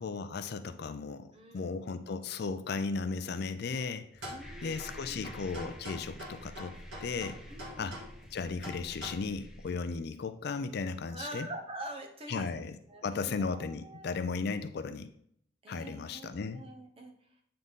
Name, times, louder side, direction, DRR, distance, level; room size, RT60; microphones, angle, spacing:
voice 1, 0.0-4.3 4.6-7.4 7.8-8.0 8.3-11.5 12.3-12.8 13.0-15.1 15.7-16.6, left 4 dB, 55° left, 10 dB, 0.4 m, -36 dB
voice 2, 1.3-1.7 4.2-5.4 7.5-7.9 11.1-12.5 12.9-14.2 15.6-17.1, right 1 dB, 30° right, 2 dB, 0.9 m, -45 dB
sound 1, 4.1-9.1, equal, 65° right, 2.3 m, -45 dB
sound 2, 4.4-9.9, equal, 5° right, 0.6 m, -49 dB
7.9 x 3.9 x 3.6 m, 0.68 s
head